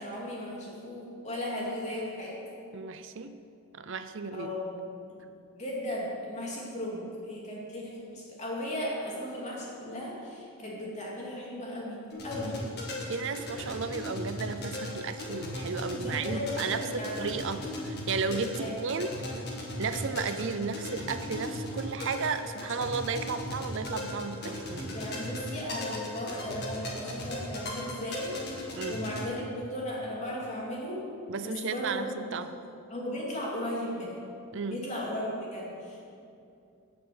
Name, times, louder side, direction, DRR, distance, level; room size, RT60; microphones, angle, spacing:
voice 1, 0.0-2.4 4.3-4.8 5.1-5.3 5.6-12.6 16.0-17.2 18.6-18.7 24.9-28.4 28.9-31.0 31.4-32.1 32.9-34.2 34.7-36.0, left 1 dB, 30° left, -5 dB, 3.0 m, -36 dB
voice 2, 2.7-3.4 3.7-4.5 13.1-19.5 19.8-24.9 28.8-29.0 31.3-32.5 34.5-34.8, right 5 dB, 55° right, 10 dB, 0.5 m, -34 dB
sound 1, 12.1-29.2, left 1 dB, 45° left, 2.1 m, -37 dB
12.5 x 6.9 x 8.0 m, 2.6 s
head